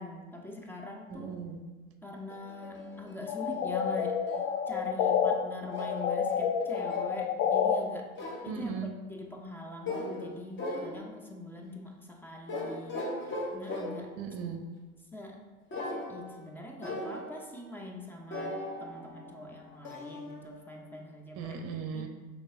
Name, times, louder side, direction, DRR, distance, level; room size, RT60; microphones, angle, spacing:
voice 1, 0.0-1.3 2.0-4.2 4.7-8.1 8.4-8.7 9.1-13.0 13.5-14.2 15.1-15.4 16.1-21.6 21.9-22.1, left 2 dB, 5° left, 1 dB, 0.3 m, -43 dB
voice 2, 1.1-1.6 8.5-8.9 14.2-14.6 21.4-22.1, right 6 dB, 35° right, 5 dB, 0.6 m, -37 dB
sound 1, 2.3-4.5 5.7-7.1 8.2-8.6 9.9-10.3 10.6-11.3 12.5-14.2 15.7-16.5 16.8-17.5 18.3-21.0, left 1 dB, 30° left, 1.0 m, -39 dB
sound 2, 3.3-5.3 5.7-7.8, left 7 dB, 65° left, 0.5 m, -29 dB
5.2 x 3.4 x 2.6 m, 1.3 s
hypercardioid pair, 90°, 40 cm